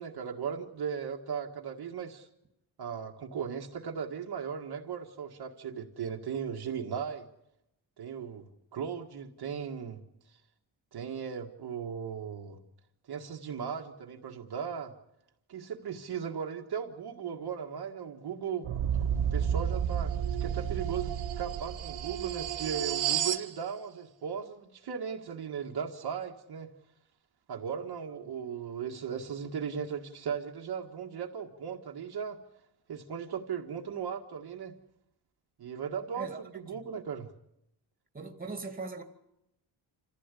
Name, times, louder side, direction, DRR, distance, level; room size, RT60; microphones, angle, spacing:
voice 1, 0.0-2.3 2.8-7.3 8.0-10.0 10.9-12.6 13.1-14.9 15.5-18.7 19.3-20.1 20.4-26.7 27.5-32.4 32.9-34.7 35.6-36.3 36.7-37.3, right 7 dB, 55° right, 1.8 m, -37 dB
sound 1, 18.6-23.5, right 9 dB, 70° right, 1.8 m, -31 dB
voice 2, 38.1-39.0, right 4 dB, 20° right, 2.3 m, -39 dB
28.0 x 15.5 x 8.4 m
wide cardioid pair, 175°, 47 cm